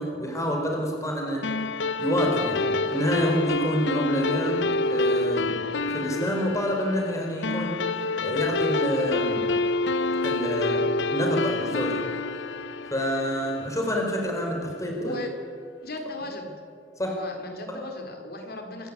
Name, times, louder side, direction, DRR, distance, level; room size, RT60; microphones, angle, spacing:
voice 1, 0.0-1.5 2.0-7.8 8.2-9.5 10.2-12.0 12.9-15.2 17.0-17.2, equal, 20° left, 1 dB, 4.5 m, -28 dB
sound 1, 1.4-14.2, left 3 dB, 90° left, 0.7 m, -27 dB
voice 2, 15.0-15.3 15.8-16.5 17.1-18.9, left 2 dB, 60° left, 3 dB, 4.0 m, -36 dB
26.0 x 13.5 x 9.9 m, 2.1 s
head